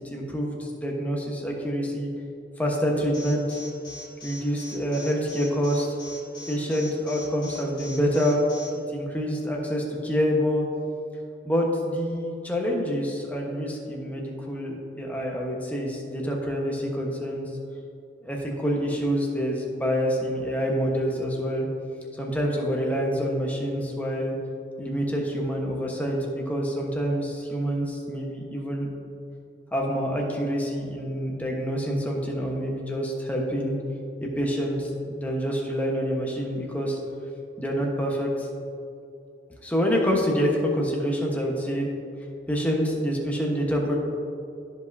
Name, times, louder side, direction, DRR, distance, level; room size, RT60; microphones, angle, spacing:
voice 1, 0.0-2.1 2.6-3.6 4.2-5.9 6.5-8.4 8.7-10.6 11.4-17.5 18.2-21.7 22.1-24.4 24.8-28.9 29.7-33.8 34.2-37.0 37.6-38.5 39.6-41.9 42.5-44.0, equal, 10° left, -1 dB, 1.1 m, -27 dB
Alarm, 3.1-8.7, left 3 dB, 25° left, 1.8 m, -41 dB
13.5 x 5.3 x 2.7 m, 2.6 s
head